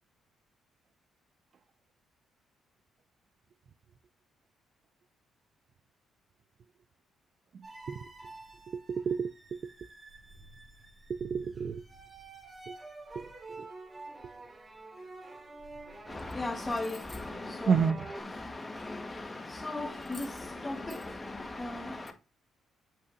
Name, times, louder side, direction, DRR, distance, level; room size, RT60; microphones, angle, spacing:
sound 1, 7.6-18.2, right 2 dB, 25° right, 1.7 m, -49 dB
voice 1, 8.7-9.7 11.1-11.8 12.7-12.8 13.2-13.3 13.6-13.7 17.7-18.0, right 6 dB, 55° right, 0.4 m, -30 dB
voice 2, 16.1-22.1, left 2 dB, 20° left, 1.8 m, -37 dB
8.2 x 5.6 x 2.5 m
cardioid pair, 90°, 0 cm